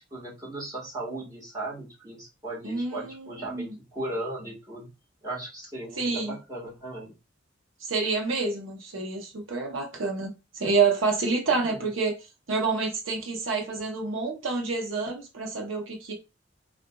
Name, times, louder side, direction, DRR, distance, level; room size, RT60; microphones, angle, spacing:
voice 1, 0.1-4.9 5.2-7.1 11.5-11.8, right 2 dB, 20° right, 1.6 m, -37 dB
voice 2, 2.6-3.7 6.0-6.3 7.9-12.1 12.5-16.1, right 4 dB, 85° right, 0.8 m, -28 dB
3.7 x 2.4 x 2.3 m
head